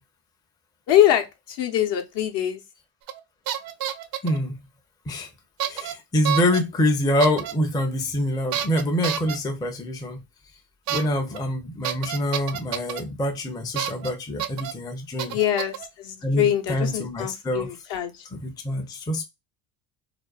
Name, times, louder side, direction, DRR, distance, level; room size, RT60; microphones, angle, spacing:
voice 1, 0.9-2.6 15.3-18.2, left 11 dB, 55° left, 0.8 m, -23 dB
sound 1, 3.1-3.2 3.5-4.4 5.6-5.9 6.2-6.6 7.2-7.5 8.5-9.4 10.9-11.0 11.3-11.4 11.8-13.0 13.8-14.1 14.4-14.7 15.2-15.9, right 10 dB, 50° right, 0.5 m, -29 dB
voice 2, 4.2-4.6 5.1-5.3 5.7-10.2 10.9-15.4 16.2-17.7 18.3-19.2, left 1 dB, 10° left, 0.4 m, -25 dB
2.5 x 2.2 x 2.3 m
supercardioid pair, 85°, 48 cm